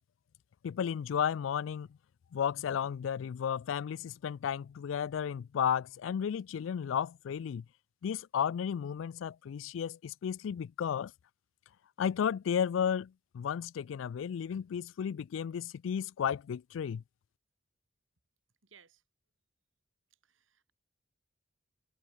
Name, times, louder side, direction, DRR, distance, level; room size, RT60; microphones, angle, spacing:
voice 1, 0.6-1.9 2.3-7.6 8.0-11.1 12.0-17.0, left 8 dB, 75° left, 0.3 m, -33 dB
voice 2, 18.6-19.0 20.2-20.7, right 7 dB, 80° right, 2.7 m, -62 dB
head